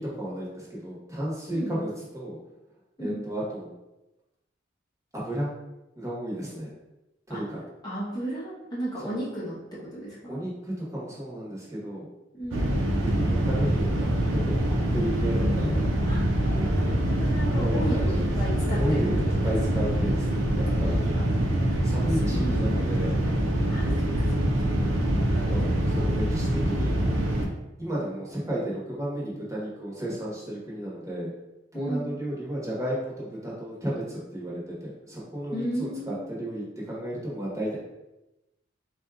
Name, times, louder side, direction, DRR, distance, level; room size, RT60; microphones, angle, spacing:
voice 1, 0.0-2.4 3.0-3.7 5.1-5.5 6.0-6.7 7.3-7.6 9.0-9.2 10.3-12.1 12.5-12.8 13.0-15.8 17.6-18.1 18.8-21.0 21.8-23.1 23.8-24.1 25.4-26.9 27.4-27.5 27.8-31.3 31.7-37.8, right 1 dB, 15° right, -6 dB, 1.1 m, -33 dB
voice 2, 7.8-9.6 9.9-10.4 12.3-12.7 16.1-19.6 22.1-22.7 23.7-23.9 24.6-24.7 31.7-32.2 35.5-36.3, right 1 dB, 20° left, -7 dB, 0.8 m, -34 dB
sound 1, 12.5-27.5, right 1 dB, 90° right, 0.7 m, -25 dB
4.1 x 2.4 x 3.6 m, 0.96 s
head